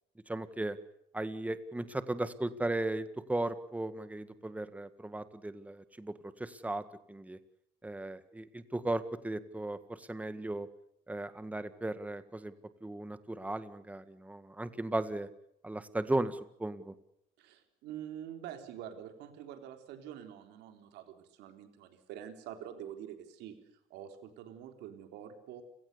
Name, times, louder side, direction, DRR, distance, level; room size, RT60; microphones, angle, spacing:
voice 1, 0.3-0.8 1.1-7.4 7.8-10.7 11.1-12.5 12.8-15.3 15.6-16.9, right 2 dB, 10° right, 12 dB, 1.7 m, -36 dB
voice 2, 17.4-25.6, right 10 dB, 90° right, 6 dB, 3.8 m, -46 dB
30.0 x 17.5 x 6.9 m, 0.78 s
cardioid pair, 110°, 17 cm